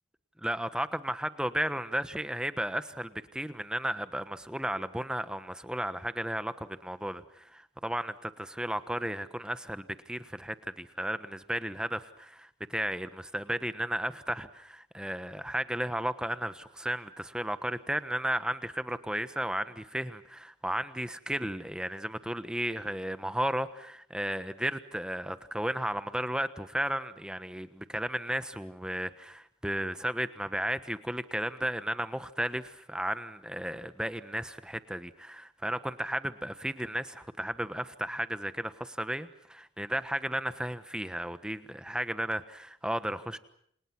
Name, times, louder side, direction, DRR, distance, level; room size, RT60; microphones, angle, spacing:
voice 1, 0.4-43.4, right 1 dB, 5° right, 12 dB, 1.2 m, -34 dB
30.0 x 28.0 x 6.0 m, 0.68 s
head